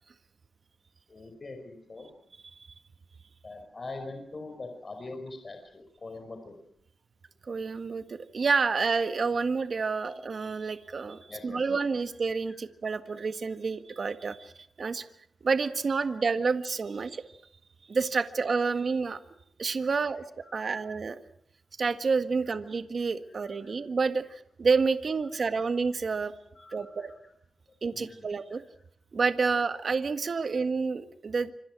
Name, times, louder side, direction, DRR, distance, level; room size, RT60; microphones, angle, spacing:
voice 1, 1.1-2.1 3.4-6.6 11.3-11.7 12.5-12.6 13.1-13.2 19.9-20.0 20.4-20.8 22.5-22.6 23.3-23.7 25.3-25.6 26.6-27.1 27.9-28.6, left 3 dB, 40° left, 5 dB, 5.3 m, -44 dB
voice 2, 7.5-14.5 14.8-15.0 15.4-17.2 17.9-19.2 19.6-20.2 20.5-21.2 21.8-26.3 26.7-27.1 27.8-28.6 29.1-31.5, right 4 dB, 55° right, 9 dB, 1.7 m, -29 dB
26.5 x 26.5 x 6.2 m, 0.70 s
wide cardioid pair, 95°, 0 cm